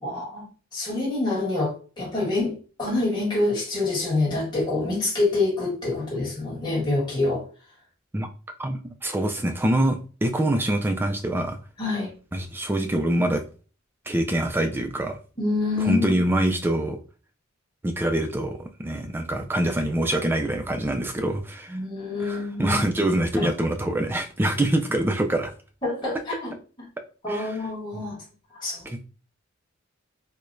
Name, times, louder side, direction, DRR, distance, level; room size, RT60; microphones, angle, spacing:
voice 1, 0.0-7.4 11.8-12.1 15.4-16.1 21.7-22.8 23.4-23.5 25.8-26.9 27.2-28.2 28.5-28.9, left 2 dB, 20° left, 1.5 m, -26 dB
voice 2, 8.6-11.6 12.3-13.4 14.1-15.2 15.8-17.0 17.8-21.8 22.2-25.5 27.3-27.6 28.9-29.1, right 1 dB, 10° right, 0.3 m, -25 dB
4.6 x 2.1 x 2.6 m
head